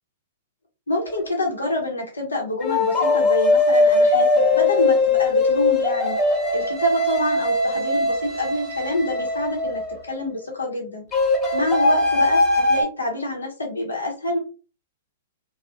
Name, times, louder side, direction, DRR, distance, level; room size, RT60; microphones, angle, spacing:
voice 1, 0.9-6.2 6.5-9.8 10.1-11.0 11.5-14.4, left 1 dB, 90° left, -1 dB, 0.8 m, -27 dB
sound 1, 1.1-1.3 2.6-10.0 11.1-12.8, left 2 dB, 20° left, 0.8 m, -20 dB
2.3 x 2.0 x 2.6 m, 0.35 s
hypercardioid pair, 115°, 0 cm